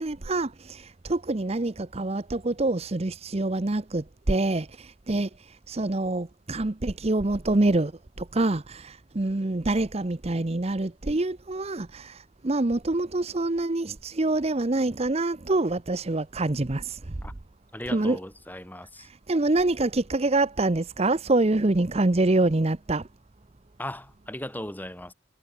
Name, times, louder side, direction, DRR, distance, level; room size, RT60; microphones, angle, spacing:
voice 1, 0.0-7.9 8.2-17.1 17.9-18.2 19.0-23.1, right 2 dB, 30° right, 0.7 m, -26 dB
voice 2, 17.7-19.1 23.8-25.1, left 1 dB, 10° left, 5.9 m, -37 dB
head